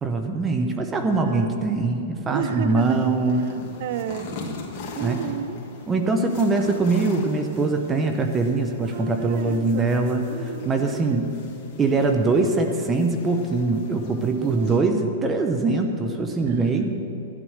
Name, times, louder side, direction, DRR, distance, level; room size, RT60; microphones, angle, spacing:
voice 1, 0.0-3.4 5.0-5.2 5.9-10.2 10.7-11.3 11.8-17.0, right 3 dB, 20° right, 5 dB, 0.9 m, -22 dB
voice 2, 1.2-1.7 2.3-3.0 3.4-4.3 5.0-5.6 8.8-10.0 10.3-11.2 14.4-15.0 16.5-16.9, right 9 dB, 55° right, 12 dB, 0.7 m, -33 dB
sound 1, 2.8-14.8, left 3 dB, 40° left, 2.4 m, -40 dB
12.5 x 11.0 x 6.5 m, 2.8 s
hypercardioid pair, 130°, 0 cm